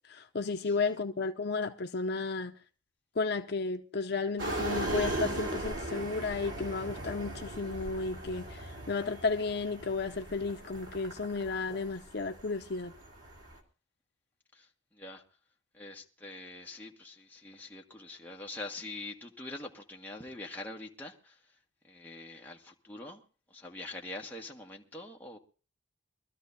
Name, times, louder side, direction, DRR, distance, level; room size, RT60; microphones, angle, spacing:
voice 1, 0.1-2.6 3.2-12.9, left 4 dB, 55° left, 0.6 m, -33 dB
sound 1, 4.4-13.6, right 1 dB, 75° right, 3.3 m, -38 dB
voice 2, 14.5-15.2 15.7-21.6 21.8-23.2 23.5-25.4, left 2 dB, 10° left, 1.6 m, -44 dB
24.0 x 13.0 x 2.8 m
head